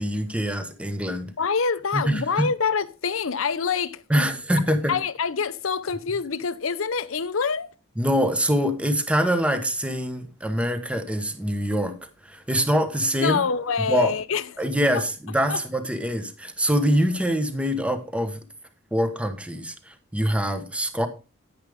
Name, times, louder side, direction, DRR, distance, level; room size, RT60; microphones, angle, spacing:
voice 1, 0.0-1.3 1.9-2.5 4.1-4.9 8.0-13.4 13.9-14.1 14.6-18.4 18.9-21.1, equal, 5° right, 1.3 m, -24 dB
voice 2, 1.4-4.3 4.9-7.7 13.2-14.4 14.9-15.0 15.5-15.6, left 5 dB, 70° left, 0.8 m, -26 dB
10.0 x 10.0 x 3.6 m
head